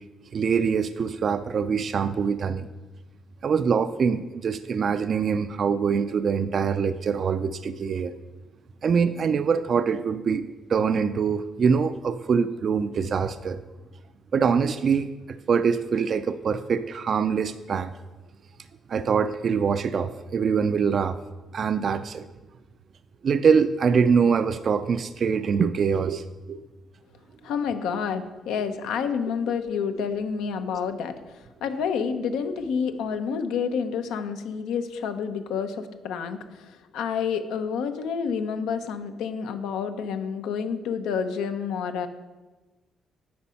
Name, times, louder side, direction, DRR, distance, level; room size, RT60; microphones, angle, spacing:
voice 1, 0.3-2.7 3.4-8.1 8.8-13.6 14.3-17.9 18.9-21.2 21.5-22.3 23.2-26.2 26.5-26.6, right 6 dB, 50° right, 12 dB, 0.3 m, -24 dB
voice 2, 27.4-31.1 31.6-42.1, left 6 dB, 90° left, 7 dB, 0.6 m, -29 dB
8.6 x 5.2 x 5.6 m, 1.2 s
cardioid pair, 90°, 0 cm